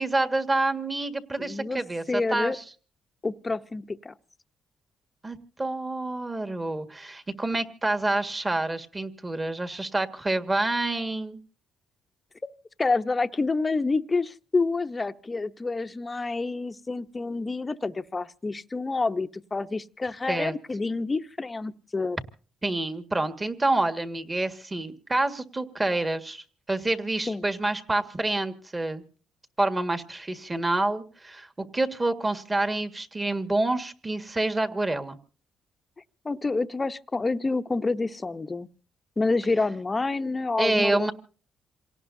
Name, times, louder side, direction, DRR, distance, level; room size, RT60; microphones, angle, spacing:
voice 1, 0.0-2.6 5.2-11.4 20.3-20.5 22.6-29.0 29.6-35.2 40.6-41.1, right 2 dB, 20° right, 1.7 m, -28 dB
voice 2, 1.4-1.8 2.1-2.6 3.2-4.1 12.8-22.2 27.3-27.5 36.2-38.7 39.2-41.1, left 3 dB, 25° left, 0.8 m, -28 dB
27.5 x 18.0 x 2.7 m
cardioid pair, 90°, 0 cm